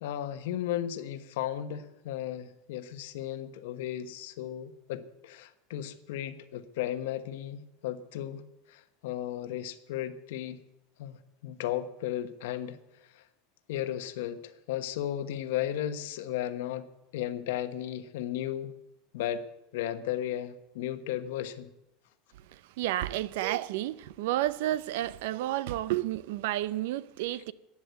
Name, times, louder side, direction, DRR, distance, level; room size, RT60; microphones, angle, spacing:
voice 1, 0.0-8.4 8.7-10.6 11.0-12.8 13.1-13.2 13.7-16.9 17.1-18.7 19.1-19.5 19.7-21.7, left 11 dB, 80° left, 1.1 m, -35 dB
voice 2, 22.4-27.5, right 14 dB, 70° right, 0.6 m, -31 dB
15.0 x 9.7 x 8.1 m
supercardioid pair, 165°, 0 cm